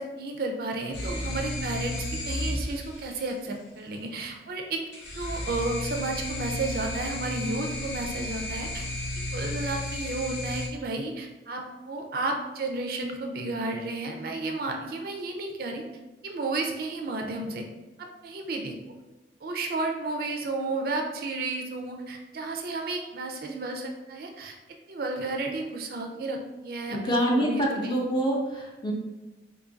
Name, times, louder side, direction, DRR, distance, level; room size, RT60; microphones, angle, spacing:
voice 1, 0.0-4.8 5.2-8.9 9.3-15.8 16.2-17.6 18.0-19.0 19.4-24.6 24.9-27.0 27.3-27.9, right 2 dB, 55° right, 3 dB, 0.4 m, -32 dB
sound 1, 0.9-3.3 4.9-10.7, left 1 dB, 85° left, 0.7 m, -33 dB
voice 2, 26.9-28.9, equal, 25° left, -2 dB, 0.6 m, -26 dB
2.6 x 2.5 x 3.8 m, 1.1 s
head